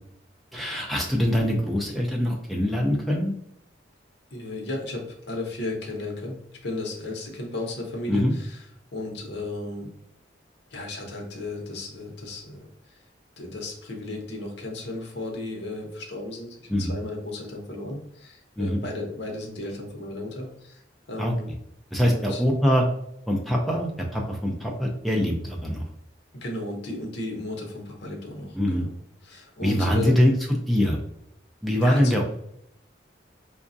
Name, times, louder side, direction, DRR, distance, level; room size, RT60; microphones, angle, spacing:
voice 1, 0.5-3.3 8.1-8.3 16.7-16.9 18.6-18.8 21.2-21.3 21.9-22.8 23.3-25.8 28.5-28.9 29.6-30.3 30.7-31.0 31.6-32.3, equal, ahead, -1 dB, 0.4 m, -23 dB
voice 2, 4.3-8.6 8.9-9.9 10.7-13.0 13.4-20.8 21.1-21.5 22.1-22.4 26.3-28.9 29.2-30.1 31.8-32.1, left 2 dB, 65° left, 1 dB, 0.8 m, -35 dB
4.8 x 2.3 x 2.6 m, 0.76 s
head